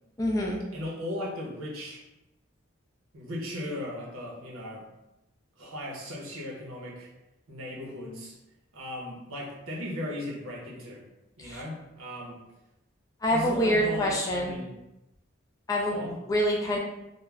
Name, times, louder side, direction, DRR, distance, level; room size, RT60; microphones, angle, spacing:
voice 1, 0.2-0.6 11.4-11.6 13.2-14.6 15.7-16.8, equal, 15° left, -2 dB, 0.3 m, -26 dB
voice 2, 0.7-2.0 3.1-4.8 5.6-7.1 7.5-8.3 8.7-11.0 11.4-12.4 13.3-14.7 15.9-16.2, left 1 dB, 90° right, -2 dB, 0.8 m, -37 dB
2.3 x 2.1 x 3.2 m, 0.91 s
head